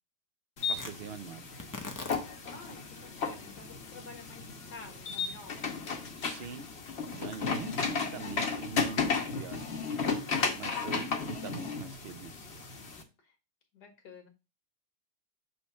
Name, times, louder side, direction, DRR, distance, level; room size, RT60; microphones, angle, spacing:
sound 1, 0.6-13.0, left 5 dB, 45° left, 1.1 m, -34 dB
Tearing, 0.7-9.0, left 3 dB, 25° left, 0.4 m, -49 dB
voice 1, 0.7-1.4 6.2-6.7 7.1-9.1 9.4-9.9 10.6-12.5, right 6 dB, 75° right, 0.5 m, -43 dB
voice 2, 2.5-5.9 10.6-10.8 13.2-13.4 13.7-14.3, left 4 dB, 70° left, 2.0 m, -50 dB
6.2 x 3.2 x 5.5 m
omnidirectional pair, 1.8 m